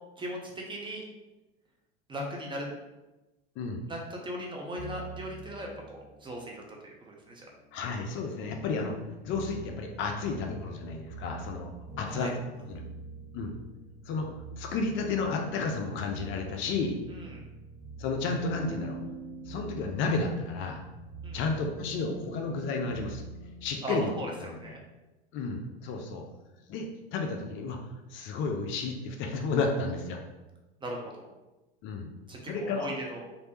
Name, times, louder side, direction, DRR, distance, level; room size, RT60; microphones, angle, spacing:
voice 1, 0.2-1.0 2.1-2.7 3.9-6.6 7.0-7.5 12.1-12.3 17.1-17.4 21.2-21.4 23.8-24.8 30.8-31.3 32.3-33.2, equal, 15° right, -1 dB, 0.5 m, -38 dB
sound 1, 4.8-6.5 7.1-23.7, right 1 dB, 85° right, 1.4 m, -44 dB
voice 2, 7.7-9.0 9.2-12.3 12.7-12.8 13.3-13.5 14.1-14.3 14.6-16.9 18.0-19.0 19.5-20.8 21.3-23.2 23.6-24.1 24.4-24.6 25.3-26.2 26.7-27.8 28.1-30.2 31.8-32.1 32.5-32.9, left 4 dB, 40° left, 3 dB, 0.5 m, -32 dB
3.2 x 2.6 x 3.0 m, 1.1 s
hypercardioid pair, 85°, 31 cm